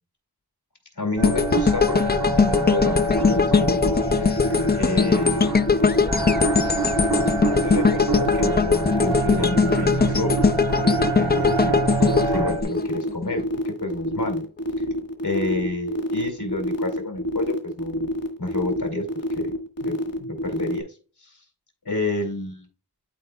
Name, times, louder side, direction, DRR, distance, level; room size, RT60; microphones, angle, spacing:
voice 1, 1.0-4.3 4.8-5.7 7.6-10.6 10.8-11.7 12.2-14.4 15.2-18.1 18.4-19.1 19.3-19.5 19.8-20.8 21.2-21.3 21.8-22.6, left 2 dB, 85° left, 4 dB, 2.4 m, -29 dB
sound 1, 1.2-13.4 13.8-14.0, left 5 dB, 30° left, 0.3 m, -21 dB
sound 2, 1.2-12.6, right 2 dB, 75° right, 1.5 m, -26 dB
sound 3, 3.1-20.8, left 1 dB, 60° left, 1.4 m, -27 dB
12.0 x 4.4 x 2.2 m, 0.37 s
wide cardioid pair, 40°, 39 cm